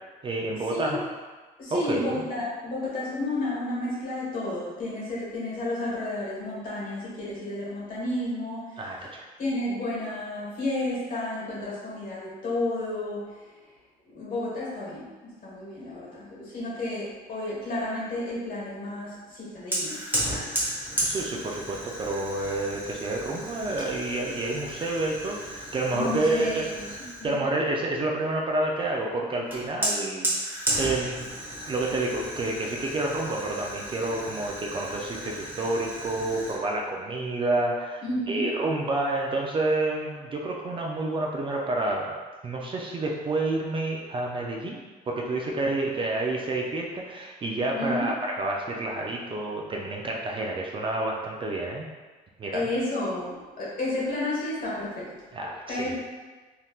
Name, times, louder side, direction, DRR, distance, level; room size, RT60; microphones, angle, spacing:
voice 1, 0.2-1.0 1.7-2.2 8.8-9.3 21.0-26.7 27.2-31.3 31.7-42.2 42.4-51.9 52.4-52.7 55.3-56.0, right 2 dB, 30° right, -1 dB, 0.4 m, -29 dB
voice 2, 1.6-8.8 9.4-13.3 14.1-15.1 15.4-20.0 25.9-26.8 27.2-27.4 38.0-38.6 47.7-48.1 52.5-55.1 55.4-56.0, left 1 dB, 55° left, -7 dB, 1.4 m, -31 dB
Fire, 19.7-27.4 29.5-36.6, right 1 dB, 10° right, 1.0 m, -33 dB
3.4 x 2.8 x 2.3 m, 1.3 s
cardioid pair, 110°, 17 cm